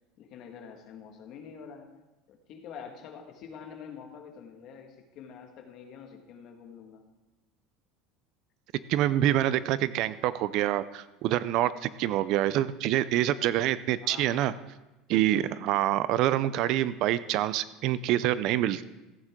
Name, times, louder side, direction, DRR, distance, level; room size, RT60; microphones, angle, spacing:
voice 1, 0.2-1.9 2.3-7.0 14.0-14.6, left 7 dB, 40° left, 3 dB, 1.6 m, -46 dB
voice 2, 8.9-14.5 15.1-18.8, right 13 dB, 45° right, 16 dB, 0.4 m, -26 dB
15.0 x 9.0 x 3.6 m, 1.0 s
cardioid pair, 165°, 0 cm